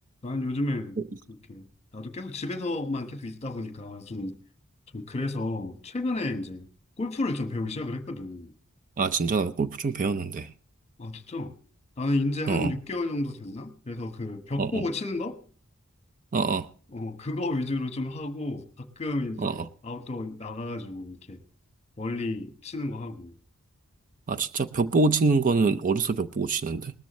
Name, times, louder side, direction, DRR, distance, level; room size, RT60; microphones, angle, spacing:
voice 1, 0.2-1.0 1.5-1.6 1.9-4.4 4.9-6.7 7.0-8.5 11.0-11.5 12.0-15.4 16.9-21.4 22.0-23.3, left 2 dB, 30° left, 10 dB, 1.1 m, -32 dB
voice 2, 9.0-10.5 12.5-12.7 14.6-14.8 16.3-16.7 19.4-19.6 24.3-26.9, right 4 dB, 40° right, 11 dB, 0.5 m, -25 dB
19.0 x 13.5 x 3.1 m, 0.41 s
head